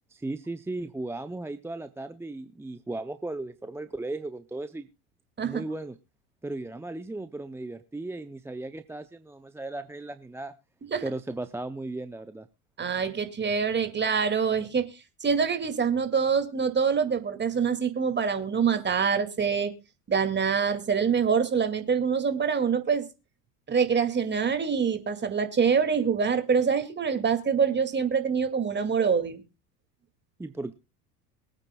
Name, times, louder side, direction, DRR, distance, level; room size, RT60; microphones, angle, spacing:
voice 1, 0.1-4.9 5.4-6.0 6.4-10.5 11.0-12.5 30.4-30.7, right 2 dB, 5° right, 11 dB, 0.6 m, -36 dB
voice 2, 12.8-14.9 15.2-19.7 20.1-23.1 23.7-29.4, right 6 dB, 20° right, 8 dB, 2.3 m, -25 dB
23.0 x 9.0 x 2.3 m, 0.29 s
hypercardioid pair, 85°, 48 cm